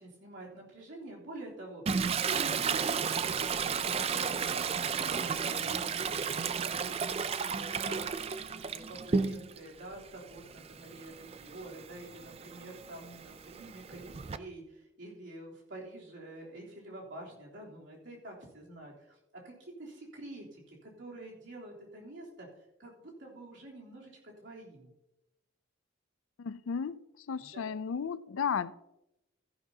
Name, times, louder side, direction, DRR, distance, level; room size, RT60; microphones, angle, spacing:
voice 1, 0.0-2.1 2.3-22.5 22.8-24.9 27.4-27.6, right 1 dB, 60° right, 3.3 m, -48 dB
Toilet flush, 1.9-9.7 10.1-14.4, right 6 dB, 30° right, 0.3 m, -33 dB
voice 2, 26.4-27.0 27.3-28.7, left 6 dB, 80° left, 0.4 m, -34 dB
14.0 x 11.0 x 2.8 m
head